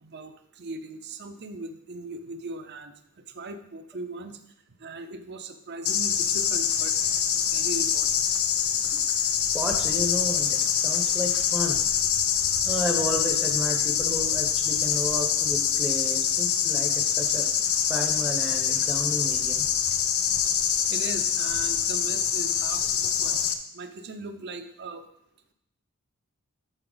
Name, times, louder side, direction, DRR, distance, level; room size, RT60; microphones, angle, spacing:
voice 1, 0.0-4.4 4.8-6.9 7.3-8.3 20.9-23.4 23.7-25.1, right 2 dB, 50° right, 7 dB, 0.7 m, -39 dB
sound 1, 5.8-23.5, left 8 dB, 70° left, 0.6 m, -25 dB
voice 2, 9.5-11.8 12.3-17.5 17.9-19.7, equal, 5° right, 2 dB, 0.9 m, -32 dB
12.5 x 4.5 x 3.9 m, 0.77 s
head